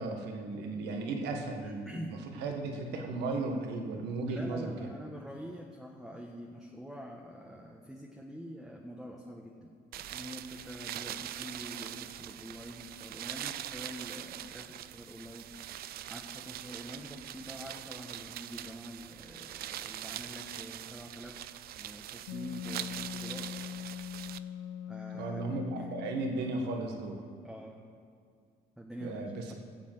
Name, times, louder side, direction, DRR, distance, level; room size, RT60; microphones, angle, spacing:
voice 1, 0.0-4.7 25.1-27.2 29.0-29.5, right 3 dB, 80° right, 3 dB, 1.7 m, -35 dB
voice 2, 1.6-2.2 4.3-9.7 10.0-15.5 16.1-21.4 21.7-23.9 24.9-25.4 25.7-25.9 27.4-27.8 28.8-29.2, equal, ahead, -1 dB, 1.3 m, -45 dB
sound 1, 9.9-24.4, right 12 dB, 65° right, 0.5 m, -43 dB
Wind instrument woodwind instrument, 22.3-26.7, left 10 dB, 85° left, 0.5 m, -42 dB
16.0 x 7.5 x 7.7 m, 2.2 s
cardioid pair, 110°, 17 cm